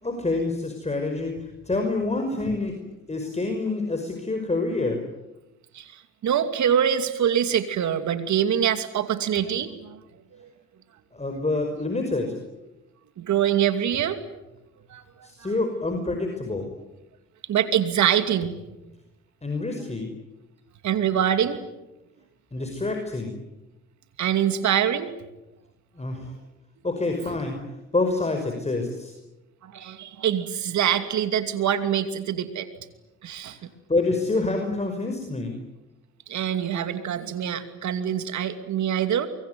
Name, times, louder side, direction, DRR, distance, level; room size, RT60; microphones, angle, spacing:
voice 1, 0.0-2.8 3.1-5.0 11.1-12.4 15.2-16.7 19.4-20.1 22.5-23.3 26.0-26.3 26.8-27.6 27.9-29.1 33.9-35.5, left 3 dB, 20° left, 4 dB, 5.6 m, -27 dB
voice 2, 5.7-10.0 10.4-10.5 13.2-14.2 14.9-15.0 15.4-15.5 17.5-18.5 20.8-21.6 24.2-25.1 29.6-32.7 33.2-33.6 36.3-39.3, right 9 dB, 75° right, 10 dB, 2.7 m, -24 dB
24.0 x 24.0 x 9.6 m, 0.98 s
supercardioid pair, 60°, 29 cm